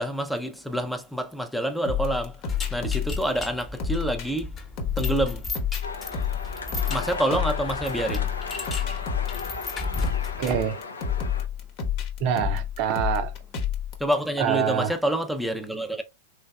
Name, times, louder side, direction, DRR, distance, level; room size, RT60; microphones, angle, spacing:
voice 1, 0.0-4.5 5.0-5.5 6.9-8.3 14.0-16.0, right 1 dB, ahead, 0.5 m, -27 dB
sound 1, 1.9-14.1, left 8 dB, 50° left, 1.0 m, -29 dB
sound 2, 2.5-10.7, left 3 dB, 25° left, 1.0 m, -35 dB
sound 3, 5.8-11.5, left 4 dB, 85° left, 0.6 m, -36 dB
voice 2, 10.4-10.8 12.2-13.3 14.4-14.9, right 8 dB, 50° right, 0.5 m, -25 dB
3.4 x 3.2 x 2.3 m
hypercardioid pair, 105°, 0 cm